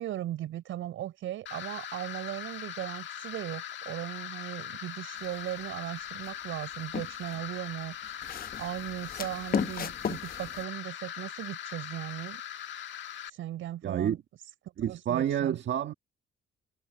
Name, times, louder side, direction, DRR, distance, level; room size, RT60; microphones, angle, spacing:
voice 1, 0.0-12.4 13.3-14.2 14.8-15.6, right 13 dB, 85° right, 7.2 m, -38 dB
sound 1, 1.5-13.3, left 10 dB, 70° left, 1.9 m, -41 dB
sound 2, 5.2-5.6 6.2-7.4 8.0-10.6, left 7 dB, 50° left, 1.3 m, -35 dB
voice 2, 13.8-14.2 14.8-15.9, right 10 dB, 65° right, 1.7 m, -29 dB
cardioid pair, 90°, 20 cm